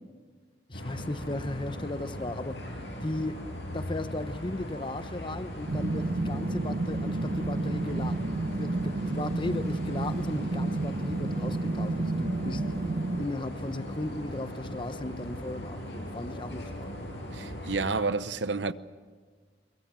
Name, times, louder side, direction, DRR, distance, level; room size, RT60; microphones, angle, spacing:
sound 1, 0.7-18.0, equal, 70° left, 6.9 m, -39 dB
voice 1, 0.7-2.8 3.0-3.4 3.7-8.2 8.5-12.7 13.2-17.1, left 2 dB, 30° left, 1.0 m, -36 dB
sound 2, 5.7-13.3, right 2 dB, 55° right, 0.7 m, -31 dB
voice 2, 17.3-18.7, right 4 dB, 90° right, 0.9 m, -30 dB
23.5 x 22.0 x 7.6 m
head